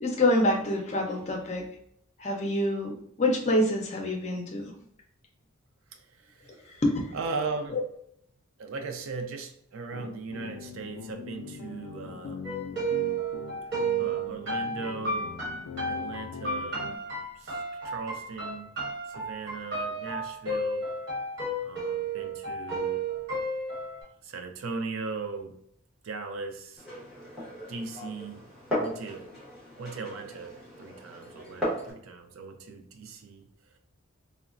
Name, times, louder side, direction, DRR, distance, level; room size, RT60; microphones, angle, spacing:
voice 1, 0.0-1.6 2.2-4.7 6.8-7.1 7.7-7.8, left 1 dB, 30° left, 1 dB, 0.5 m, -26 dB
voice 2, 5.9-6.8 7.1-7.8 8.6-12.5 14.0-15.3 15.9-16.8 17.4-17.6 17.8-18.7 19.1-20.9 21.6-23.0 24.2-25.6 26.0-26.8 27.7-28.4 28.8-29.3 29.8-33.5, right 4 dB, 70° right, 5 dB, 0.4 m, -38 dB
sound 1, 9.9-17.0, left 6 dB, 85° left, 0.3 m, -42 dB
sound 2, 12.4-24.0, right 3 dB, 55° right, 1.3 m, -32 dB
Glass, 26.8-31.9, equal, 5° right, 1.1 m, -36 dB
3.8 x 2.1 x 2.4 m, 0.69 s
head